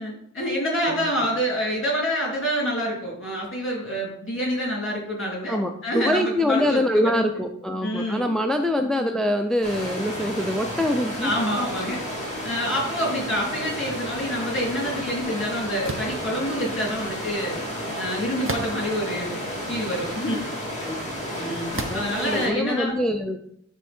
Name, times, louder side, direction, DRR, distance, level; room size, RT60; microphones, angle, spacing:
voice 1, 0.0-7.1 7.8-8.3 11.2-12.0 12.4-17.6 18.0-19.4 19.7-20.4 21.4-22.9, equal, 40° left, -3 dB, 3.2 m, -27 dB
voice 2, 5.5-11.3 20.8-21.0 21.4-23.4, left 1 dB, ahead, 6 dB, 0.5 m, -25 dB
sound 1, 9.6-22.5, equal, 20° left, 2.8 m, -32 dB
sound 2, 15.8-16.2 18.4-19.0 19.7-19.8 21.7-22.1, right 2 dB, 40° right, 0.9 m, -31 dB
10.5 x 3.7 x 4.4 m, 0.70 s
wide cardioid pair, 55°, 32 cm